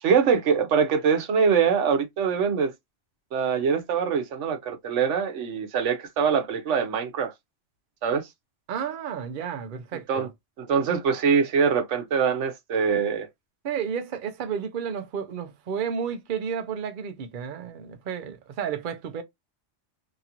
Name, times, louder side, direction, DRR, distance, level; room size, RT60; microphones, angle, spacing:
voice 1, 0.0-2.7 3.3-7.3 8.0-8.3 10.1-10.3 10.6-13.3, right 6 dB, 75° right, 1.0 m, -23 dB
voice 2, 8.7-10.3 13.6-19.2, right 7 dB, 55° right, 0.6 m, -32 dB
2.9 x 2.8 x 2.4 m
omnidirectional pair, 1.2 m